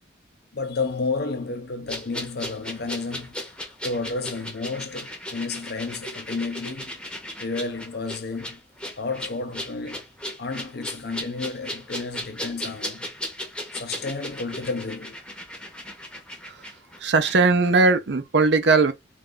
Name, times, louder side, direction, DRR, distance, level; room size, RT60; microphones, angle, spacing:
voice 1, 0.5-3.4 3.8-7.0 7.4-8.6 9.0-10.0 10.4-13.1 13.7-15.2, left 3 dB, 55° left, 0.6 m, -31 dB
sound 1, 1.9-17.4 17.6-17.8, left 1 dB, 5° left, 0.8 m, -36 dB
voice 2, 17.0-18.9, right 3 dB, 60° right, 0.6 m, -19 dB
3.3 x 2.4 x 3.8 m
head